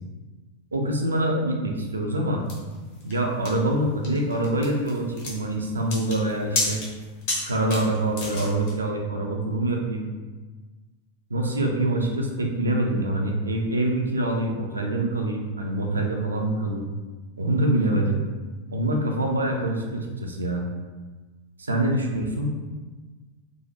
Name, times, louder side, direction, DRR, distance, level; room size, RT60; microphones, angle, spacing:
voice 1, 0.7-2.4 3.0-6.8 7.4-10.1 11.3-16.9 17.4-18.2 18.7-20.6 21.6-22.5, right 1 dB, 75° right, 1 dB, 0.4 m, -25 dB
sound 1, 2.5-8.7, left 2 dB, 50° left, 0.7 m, -32 dB
2.6 x 2.0 x 2.9 m, 1.3 s
figure-of-eight pair, 90°, 0 cm